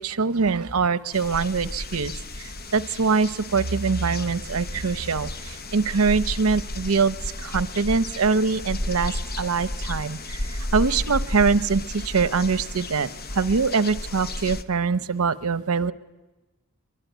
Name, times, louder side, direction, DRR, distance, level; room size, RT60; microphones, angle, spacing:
voice 1, 0.0-15.9, right 5 dB, 90° right, 13 dB, 0.8 m, -24 dB
sound 1, 1.1-14.6, left 1 dB, 45° left, 1.0 m, -33 dB
23.5 x 23.0 x 9.2 m, 1.1 s
head